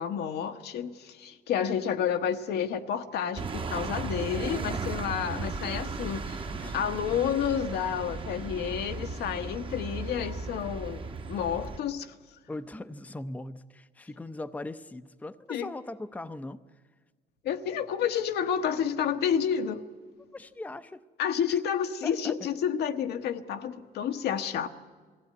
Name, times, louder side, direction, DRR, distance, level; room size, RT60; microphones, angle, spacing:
voice 1, 0.0-6.4 6.7-11.0 11.3-12.1 15.5-15.7 17.4-19.8 21.2-24.7, left 8 dB, 75° left, 1.2 m, -30 dB
sound 1, 3.3-11.8, right 4 dB, 30° right, 1.1 m, -36 dB
voice 2, 12.5-16.6 20.3-21.0 21.5-21.6 22.0-22.3, left 2 dB, 10° left, 0.6 m, -40 dB
22.0 x 15.5 x 9.6 m
cardioid pair, 110°, 17 cm